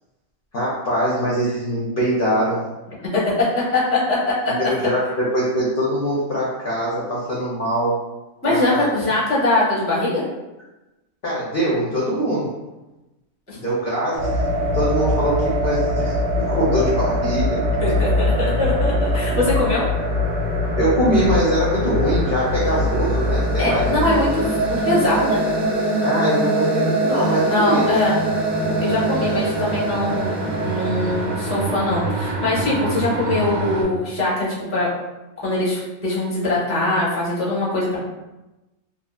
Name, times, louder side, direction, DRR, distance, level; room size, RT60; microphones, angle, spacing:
voice 1, 0.5-2.6 4.6-7.9 8.4-8.9 11.2-12.5 13.5-14.4 14.7-17.6 20.8-24.1 26.0-28.0, equal, 55° left, -7 dB, 0.6 m, -22 dB
voice 2, 3.7-4.2 8.4-10.2 13.5-13.6 17.8-19.8 23.6-25.4 27.4-28.2 28.8-30.4 30.6-34.9 35.4-38.0, left 2 dB, 15° left, -7 dB, 0.6 m, -22 dB
sound 1, 14.2-33.8, equal, 65° right, 0.8 m, -22 dB
2.7 x 2.6 x 2.2 m, 1.0 s
omnidirectional pair, 1.4 m